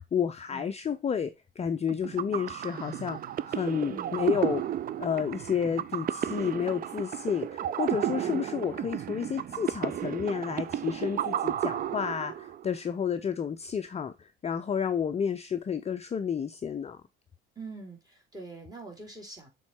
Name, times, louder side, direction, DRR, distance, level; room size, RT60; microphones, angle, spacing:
voice 1, 0.0-3.2 3.4-4.6 5.0-17.0, left 7 dB, 20° left, 0.6 m, -31 dB
sound 1, 1.9-12.7, right 11 dB, 30° right, 0.5 m, -33 dB
voice 2, 3.9-4.5 8.2-8.4 17.5-19.5, right 3 dB, 10° right, 3.1 m, -44 dB
7.1 x 3.9 x 4.6 m
hypercardioid pair, 65°, 30 cm